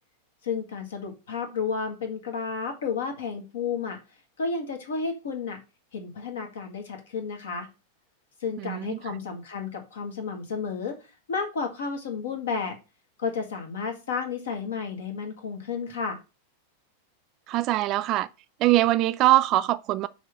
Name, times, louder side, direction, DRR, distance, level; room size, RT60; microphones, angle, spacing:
voice 1, 0.4-4.0 4.4-5.6 5.9-7.7 8.4-11.0 11.3-12.8 13.2-16.2, left 5 dB, 65° left, 1.7 m, -32 dB
voice 2, 8.6-9.1 17.5-18.3 18.6-20.1, right 16 dB, 40° right, 0.3 m, -23 dB
6.1 x 3.6 x 5.3 m
figure-of-eight pair, 90°, 0 cm